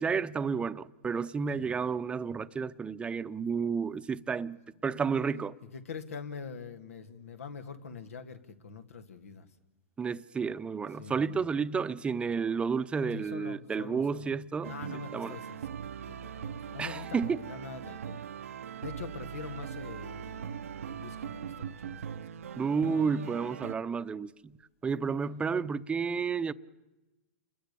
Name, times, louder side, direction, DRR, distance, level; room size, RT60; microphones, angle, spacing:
voice 1, 0.0-4.6 4.8-5.6 10.0-14.7 15.1-15.4 16.8-17.4 22.6-24.5 24.8-26.5, right 5 dB, 15° right, 0.8 m, -31 dB
voice 2, 5.7-9.5 11.0-11.4 13.1-14.4 14.6-15.7 16.1-18.2 18.8-22.2, left 5 dB, 90° left, 2.2 m, -44 dB
sound 1, 14.6-23.7, right 8 dB, 85° right, 0.9 m, -40 dB
29.0 x 21.0 x 6.9 m
hypercardioid pair, 120°, 7 cm